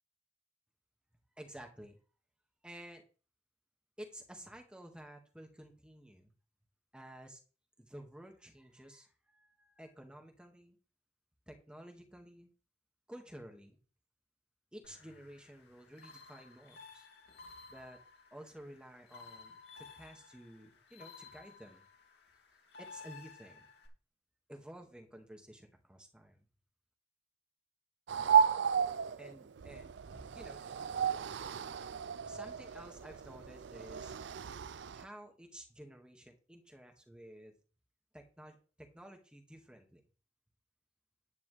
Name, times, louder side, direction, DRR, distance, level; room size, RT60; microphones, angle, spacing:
voice 1, 1.3-2.0 2.6-3.0 4.0-6.3 6.9-7.4 7.8-10.8 11.5-12.5 13.1-13.8 14.7-17.1 17.7-18.0 18.3-21.9 22.8-23.7 24.5-26.5 29.2-30.6 32.3-34.2 34.9-37.5 38.1-40.0, right 1 dB, 5° right, 3 dB, 1.9 m, -52 dB
sound 1, 14.8-23.9, left 5 dB, 65° left, 2.7 m, -55 dB
sound 2, 28.1-35.0, right 7 dB, 75° right, 0.4 m, -33 dB
10.5 x 10.0 x 3.4 m, 0.37 s
head